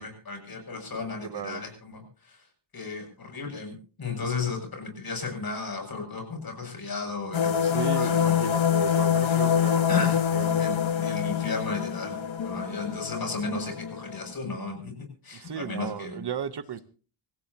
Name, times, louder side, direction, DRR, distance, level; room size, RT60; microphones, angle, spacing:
voice 1, 0.0-2.4 2.7-8.4 9.2-9.4 9.9-10.2 10.6-14.9 15.2-16.2, left 4 dB, 45° left, 7.5 m, -34 dB
voice 2, 0.9-1.6 7.6-10.7 15.3-16.8, right 8 dB, 55° right, 1.0 m, -35 dB
sound 1, 7.3-14.3, left 8 dB, 65° left, 1.6 m, -25 dB
27.0 x 15.5 x 2.9 m
wide cardioid pair, 130°, 49 cm